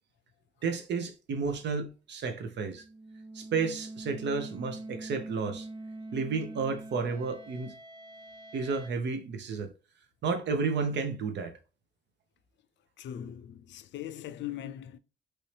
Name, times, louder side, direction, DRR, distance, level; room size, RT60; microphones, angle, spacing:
voice 1, 0.6-2.8 3.3-5.7 6.1-7.8 8.5-9.7 10.2-11.5, right 4 dB, 65° right, 0.8 m, -32 dB
sound 1, 2.6-8.9, right 2 dB, 25° right, 0.7 m, -44 dB
voice 2, 13.0-15.0, left 11 dB, 65° left, 0.4 m, -40 dB
3.1 x 2.7 x 3.2 m
cardioid pair, 90°, 20 cm